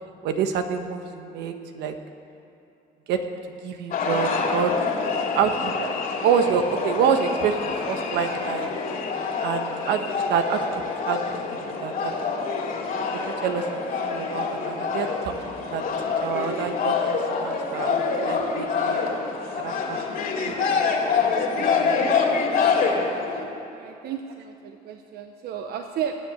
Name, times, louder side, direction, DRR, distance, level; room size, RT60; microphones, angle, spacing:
voice 1, 0.2-1.9 3.1-4.7 5.3-5.9 6.2-8.7 9.4-12.2 13.1-13.6 14.0-15.9 16.2-19.0 19.6-20.0 20.4-20.8 21.2-22.4, right 7 dB, 85° right, 6 dB, 1.2 m, -27 dB
sound 1, 3.9-23.4, left 5 dB, 60° left, 2.7 m, -26 dB
voice 2, 23.7-26.2, right 9 dB, 70° right, 5 dB, 1.0 m, -33 dB
19.5 x 7.9 x 8.3 m, 2.8 s
cardioid pair, 110°, 17 cm